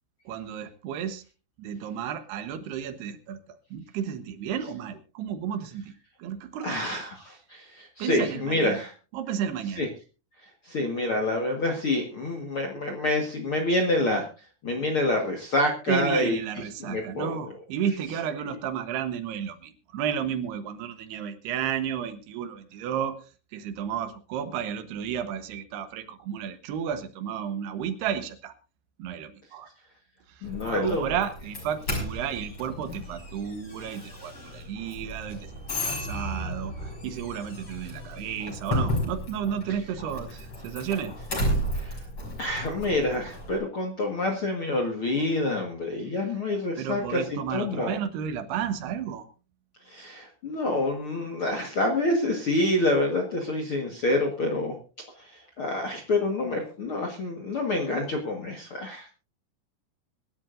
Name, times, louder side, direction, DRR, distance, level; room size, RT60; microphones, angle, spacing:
voice 1, 0.3-1.2 1.6-5.9 6.2-7.0 8.0-8.8 9.1-9.9 15.9-23.2 23.5-28.5 29.0-29.7 30.3-35.5 35.8-41.1 46.8-49.3, right 8 dB, 80° right, 10 dB, 3.1 m, -32 dB
voice 2, 6.6-8.9 9.8-9.9 10.6-14.3 14.6-16.4 16.9-17.5 30.4-31.1 41.7-42.1 42.4-47.2 47.5-48.0 49.8-54.8 55.1-59.1, left 2 dB, 55° left, 2 dB, 1.5 m, -27 dB
Doorbell, 30.4-43.6, equal, 30° left, 6.2 m, -34 dB
24.0 x 12.0 x 2.6 m, 0.33 s
omnidirectional pair, 4.8 m